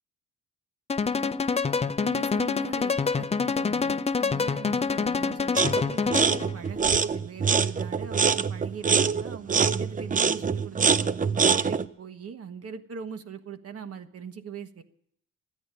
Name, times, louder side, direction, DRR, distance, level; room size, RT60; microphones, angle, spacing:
sound 1, 0.9-6.5, left 5 dB, 20° left, 0.5 m, -26 dB
voice 1, 2.0-14.8, right 6 dB, 50° right, 8 dB, 1.4 m, -41 dB
sound 2, 5.6-5.8 6.1-11.9, right 6 dB, 25° right, 0.6 m, -24 dB
13.5 x 9.7 x 9.6 m, 0.71 s
cardioid pair, 90°, 30 cm